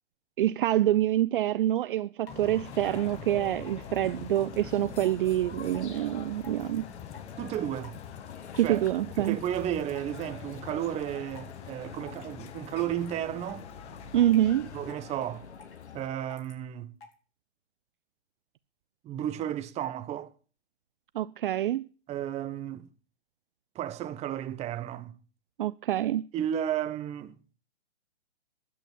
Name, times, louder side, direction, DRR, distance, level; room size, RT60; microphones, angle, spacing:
voice 1, 0.4-6.8 8.6-9.4 14.1-14.7 21.1-21.9 25.6-26.2, right 12 dB, 50° right, 0.5 m, -26 dB
sound 1, 1.8-1.9 2.3-2.4 2.9-3.2 3.7-4.0 4.3-4.6 5.0-5.2 5.7-6.0 6.4-6.7 7.1-7.3 7.8-8.0 8.5-8.7 9.2-9.6 9.9-10.2 10.5-10.9 11.4-11.6 12.1-12.4 12.7-13.1 13.4-13.7 14.2-14.4 14.9-15.0 15.3-15.8 16.3-16.5 17.0-17.1, left 4 dB, 55° left, 6.1 m, -49 dB
sound 2, 2.3-14.9, left 9 dB, 20° left, 1.0 m, -46 dB
sound 3, 2.6-16.1, left 6 dB, 75° left, 1.7 m, -47 dB
voice 2, 7.4-8.0 8.6-8.9 9.2-13.7 14.7-15.5 15.9-17.0 19.0-20.3 22.1-22.9 23.7-25.1 26.3-27.4, right 11 dB, 20° right, 1.2 m, -33 dB
11.0 x 8.9 x 8.9 m
hypercardioid pair, 135°, 34 cm